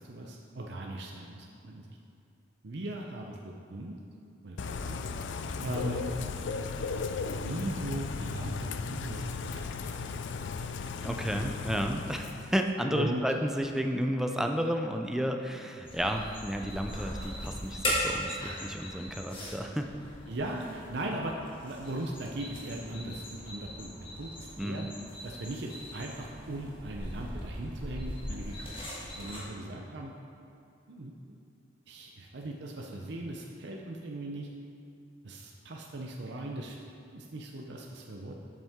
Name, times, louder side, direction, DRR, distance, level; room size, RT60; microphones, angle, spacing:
voice 1, 0.0-2.0 2.6-3.9 4.4-5.0 5.6-6.1 7.4-10.2 12.9-13.2 20.3-21.3 21.6-24.9 25.2-30.1 30.9-31.4 31.9-34.5 35.2-36.8 37.1-38.3, right 1 dB, 65° right, -1 dB, 0.6 m, -39 dB
Bird / Rain, 4.6-12.7, left 4 dB, 75° left, 0.4 m, -36 dB
voice 2, 11.0-19.9 24.6-24.9, equal, 5° right, 4 dB, 0.4 m, -32 dB
sound 1, 15.8-29.4, equal, 30° left, 1.5 m, -39 dB
8.1 x 7.5 x 3.6 m, 2.7 s
head